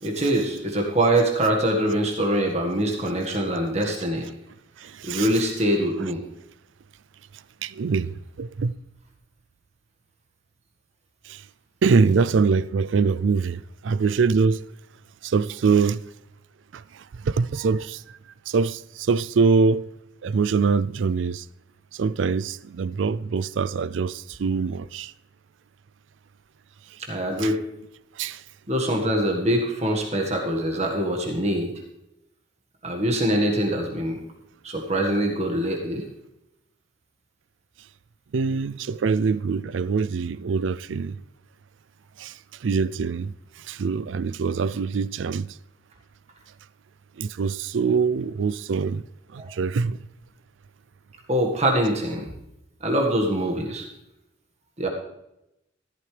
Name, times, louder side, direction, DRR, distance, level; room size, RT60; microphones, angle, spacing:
voice 1, 0.0-4.3 5.0-6.2 27.0-27.6 28.7-31.7 32.8-34.2 34.6-36.0 49.4-49.5 51.3-52.3 52.8-53.9 54.8-54.9, right 1 dB, 35° right, 1.7 m, -24 dB
voice 2, 4.8-5.3 7.6-8.7 11.3-11.4 11.8-14.6 15.2-16.0 16.7-16.8 17.3-18.0 18.5-19.9 20.2-21.4 22.0-25.1 27.4-27.5 28.2-28.4 38.3-41.2 42.2-42.3 42.6-43.3 43.7-45.5 47.2-49.0 49.3-50.0, right 5 dB, 80° right, 0.4 m, -23 dB
14.5 x 12.5 x 3.4 m
head